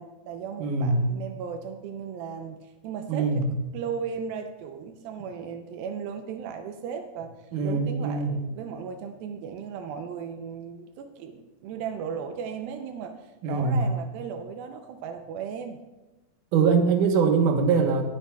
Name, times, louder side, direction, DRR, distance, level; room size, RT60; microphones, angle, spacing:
voice 1, 0.0-3.4 3.7-15.8, right 7 dB, 85° right, 6 dB, 2.5 m, -36 dB
voice 2, 0.6-1.0 3.1-3.4 7.5-8.3 13.4-13.8 16.5-18.0, right 5 dB, 70° right, 3 dB, 2.5 m, -22 dB
21.0 x 8.7 x 2.3 m, 1.1 s
omnidirectional pair, 4.2 m